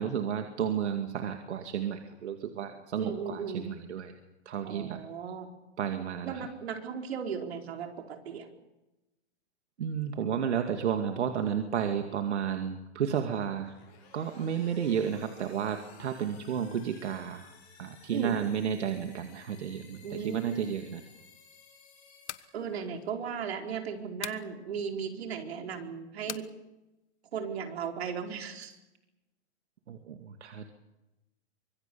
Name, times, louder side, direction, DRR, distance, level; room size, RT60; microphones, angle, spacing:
voice 1, 0.0-4.1 4.5-5.0 5.8-6.5 9.8-13.7 14.1-17.5 17.8-21.0 29.9-30.7, right 8 dB, 80° right, 6 dB, 2.4 m, -32 dB
voice 2, 3.0-3.7 4.6-5.5 6.2-8.5 18.1-18.3 20.0-20.7 22.5-26.4 27.3-28.8, right 6 dB, 65° right, 4 dB, 4.4 m, -36 dB
sound 1, 13.5-23.2, left 6 dB, 25° left, 7.8 m, -57 dB
sound 2, 22.1-22.5 24.2-24.5 26.3-26.5, left 10 dB, 85° left, 1.3 m, -39 dB
25.0 x 21.5 x 7.0 m, 0.99 s
hypercardioid pair, 175°, 34 cm